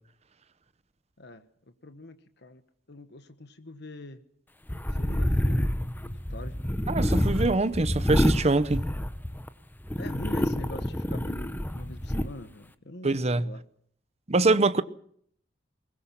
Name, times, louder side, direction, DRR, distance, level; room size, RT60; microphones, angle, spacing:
voice 1, 1.2-2.6 2.9-4.2 4.9-5.7 6.0-6.6 10.0-13.6, left 1 dB, 65° left, 1.4 m, -44 dB
sound 1, 4.7-9.5 9.9-12.3, equal, 10° left, 0.9 m, -28 dB
voice 2, 6.9-8.8 13.0-13.5 14.3-14.8, right 2 dB, 35° right, 0.9 m, -24 dB
22.0 x 20.5 x 5.9 m
head